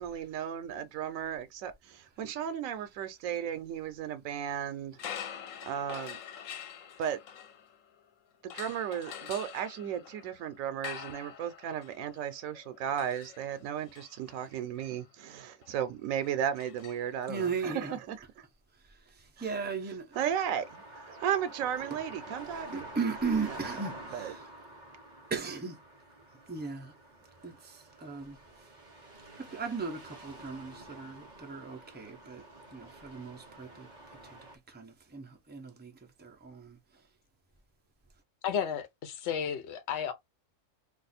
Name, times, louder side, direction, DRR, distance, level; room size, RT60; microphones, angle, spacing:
voice 1, 0.0-5.4 5.7-6.2 7.0-7.2 8.4-18.4 19.4-19.5 20.2-20.8 21.2-22.9 23.5-23.8 24.1-24.3, right 9 dB, 90° right, 1.0 m, -35 dB
sound 1, 4.9-8.0 8.5-17.5, left 9 dB, 80° left, 1.0 m, -46 dB
voice 2, 17.3-18.0 19.1-20.2 22.7-24.4 25.3-25.8 26.5-26.9 27.4-28.4 29.4-32.4 32.7-33.9 34.2-34.4 34.7-35.9 36.2-36.8, right 5 dB, 15° right, 0.4 m, -37 dB
sound 2, 20.1-34.6, right 1 dB, 40° right, 0.9 m, -48 dB
voice 3, 38.4-40.1, left 8 dB, 65° left, 0.9 m, -33 dB
2.5 x 2.4 x 4.1 m
omnidirectional pair, 1.4 m